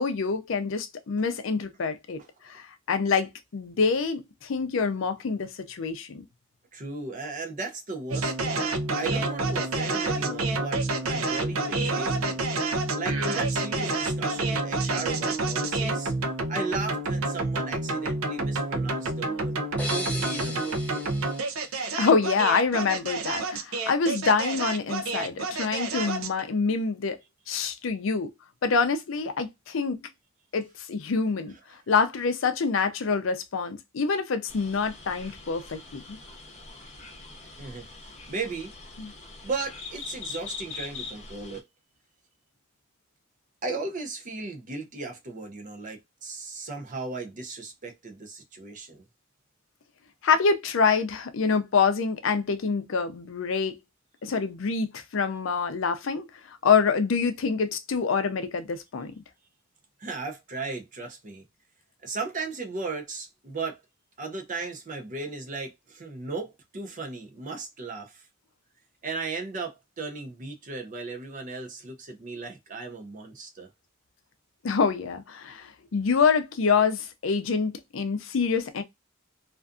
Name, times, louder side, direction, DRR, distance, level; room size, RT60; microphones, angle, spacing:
voice 1, 0.0-6.2 22.0-27.2 27.5-28.3 28.6-30.0 30.5-31.5 31.9-36.2 39.0-39.1 50.2-53.8 54.2-59.1 74.6-78.8, left 5 dB, 65° left, 0.5 m, -26 dB
voice 2, 6.7-8.7 9.0-12.4 12.9-16.1 16.5-19.6 19.9-21.1 37.6-37.9 38.3-38.7 39.4-41.6 43.6-49.0 60.0-61.5 62.0-63.8 64.2-68.3 69.0-73.7, right 3 dB, 40° right, 0.6 m, -36 dB
sound 1, 8.1-26.4, right 2 dB, 85° right, 0.5 m, -28 dB
sound 2, 19.8-22.5, left 1 dB, 5° left, 0.6 m, -37 dB
sound 3, 34.5-41.6, left 4 dB, 35° left, 0.8 m, -42 dB
2.5 x 2.3 x 2.4 m
head